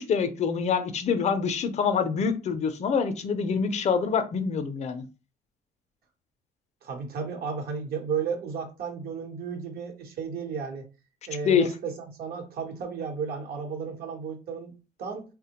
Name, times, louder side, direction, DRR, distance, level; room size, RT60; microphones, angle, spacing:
voice 1, 0.0-5.0 11.4-11.7, left 6 dB, 40° left, 9 dB, 0.5 m, -25 dB
voice 2, 6.8-10.8 11.3-14.7 15.0-15.2, right 6 dB, 65° right, 3 dB, 0.9 m, -33 dB
3.3 x 2.1 x 2.9 m, 0.32 s
cardioid pair, 110°, 17 cm